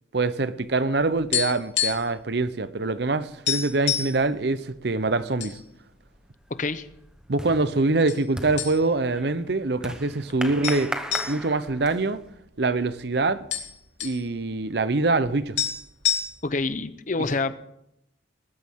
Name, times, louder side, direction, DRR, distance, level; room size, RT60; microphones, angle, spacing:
voice 1, 0.1-5.6 7.3-10.9 11.3-12.2 12.6-13.4 14.0-15.6, right 3 dB, 60° right, 0.7 m, -24 dB
sound 1, 1.2-2.2 2.5-2.7 3.0-3.1 3.5-4.2 4.9-5.6 5.9-6.1 6.8-7.4 8.1-8.2 8.6-9.1 9.5-9.6 10.6-12.7 13.0-13.1 13.3-14.2 15.2-15.3 15.6-16.6, left 9 dB, 70° left, 2.8 m, -28 dB
sound 2, 5.7-6.1 6.5-12.2, equal, 5° right, 1.0 m, -37 dB
voice 2, 16.4-17.6, left 3 dB, 40° left, 0.8 m, -27 dB
19.5 x 13.0 x 3.7 m
head